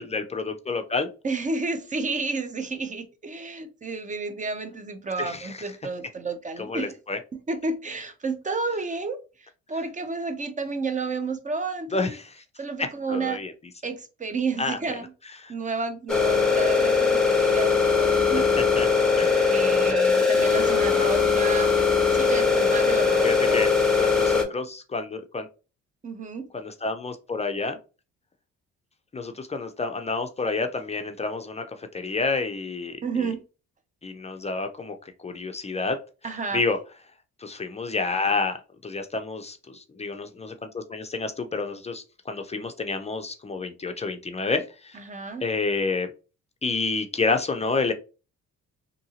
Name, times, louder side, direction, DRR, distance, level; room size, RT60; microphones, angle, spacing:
voice 1, 0.0-1.1 5.2-5.5 6.6-7.2 11.9-12.4 12.8-13.5 14.6-14.8 15.4-15.5 18.8-18.9 19.2-19.5 23.2-25.5 26.5-27.8 29.1-31.7 31.9-33.0 34.0-34.9 35.2-36.0 36.5-36.8 37.4-38.6 38.8-45.0 45.4-46.1 46.6-47.9, left 3 dB, 20° left, 0.4 m, -29 dB
voice 2, 1.2-7.0 7.3-9.2 9.7-12.2 12.6-13.4 13.8-15.1 15.5-18.5 19.5-21.7 22.1-23.7 24.3-24.5 26.0-26.5 33.0-33.4 36.2-36.6 44.9-45.5, right 4 dB, 25° right, 0.6 m, -31 dB
sound 1, 16.1-24.4, left 5 dB, ahead, 0.9 m, -21 dB
2.8 x 2.6 x 2.7 m
cardioid pair, 90°, 30 cm